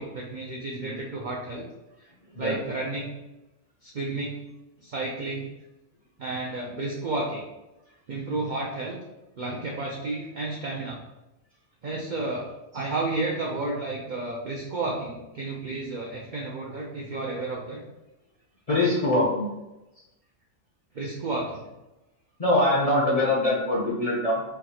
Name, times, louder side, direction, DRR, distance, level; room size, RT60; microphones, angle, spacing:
voice 1, 0.0-1.6 2.4-3.1 3.8-4.4 4.8-5.5 6.2-7.4 8.1-9.0 9.4-11.0 11.8-17.8 19.9-20.0 20.9-21.6, right 2 dB, 85° right, -2 dB, 0.4 m, -32 dB
voice 2, 18.7-19.5 22.4-24.4, left 1 dB, 50° left, -5 dB, 0.4 m, -23 dB
3.4 x 2.3 x 2.8 m, 0.99 s
omnidirectional pair, 1.4 m